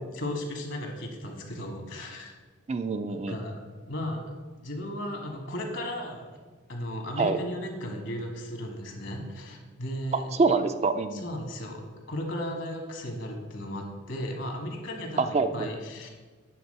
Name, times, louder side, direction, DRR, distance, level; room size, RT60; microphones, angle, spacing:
voice 1, 0.1-2.3 3.1-3.6 3.9-4.2 4.6-6.3 6.7-10.3 11.1-16.1, left 1 dB, 65° left, 2 dB, 1.6 m, -35 dB
voice 2, 2.7-3.4 7.2-7.4 10.3-11.2 15.2-15.7, right 4 dB, 30° right, 9 dB, 0.3 m, -25 dB
9.6 x 3.9 x 6.6 m, 1.4 s
head